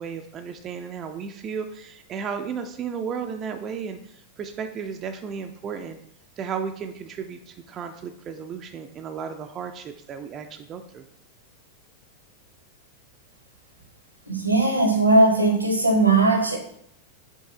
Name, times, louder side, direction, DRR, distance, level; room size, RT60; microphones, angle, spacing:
voice 1, 0.0-4.0 4.4-6.0 6.4-11.0, right 6 dB, 30° right, 6 dB, 0.3 m, -34 dB
voice 2, 14.3-16.6, right 2 dB, 85° right, 3 dB, 0.8 m, -19 dB
5.4 x 2.6 x 3.7 m, 0.70 s
figure-of-eight pair, 90°, 0 cm